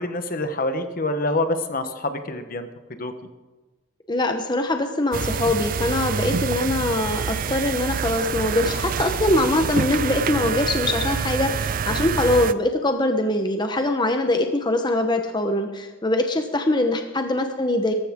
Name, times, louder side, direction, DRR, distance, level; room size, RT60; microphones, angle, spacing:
voice 1, 0.0-3.1 11.9-12.1, left 2 dB, 45° left, 8 dB, 1.2 m, -27 dB
voice 2, 4.1-17.9, left 1 dB, 25° left, 5 dB, 1.0 m, -23 dB
sound 1, 5.1-12.5, right 6 dB, 45° right, 0.4 m, -26 dB
18.0 x 14.5 x 3.7 m, 1.2 s
head